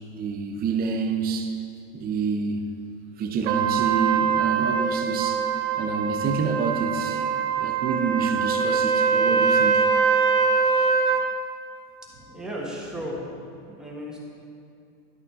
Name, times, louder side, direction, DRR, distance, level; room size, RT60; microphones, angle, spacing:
voice 1, 0.2-1.6 1.9-2.6 3.2-5.5 5.8-7.3 7.6-9.9, right 5 dB, 25° right, 4 dB, 0.7 m, -27 dB
Trumpet, 3.5-11.3, right 5 dB, 55° right, 0.8 m, -23 dB
voice 2, 12.1-13.5 13.8-14.2, equal, ahead, -5 dB, 1.3 m, -35 dB
12.0 x 8.4 x 3.7 m, 2.6 s
supercardioid pair, 155°, 40 cm